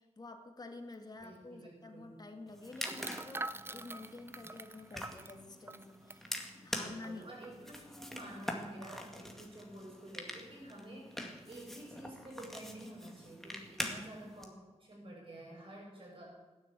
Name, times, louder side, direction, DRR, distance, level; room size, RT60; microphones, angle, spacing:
voice 1, 0.0-7.3 13.8-14.0, left 2 dB, 35° left, 5 dB, 1.9 m, -49 dB
sound 1, 0.9-1.0 1.2-1.4 2.8-6.5 7.0-7.1 7.4-7.7, right 2 dB, 20° right, 0.5 m, -45 dB
voice 2, 1.2-2.2 6.8-16.3, right 1 dB, 50° right, -2 dB, 7.4 m, -50 dB
sound 2, 2.5-14.4, equal, 5° left, 2.0 m, -45 dB
16.5 x 10.5 x 8.3 m, 1.2 s
wide cardioid pair, 140°, 12 cm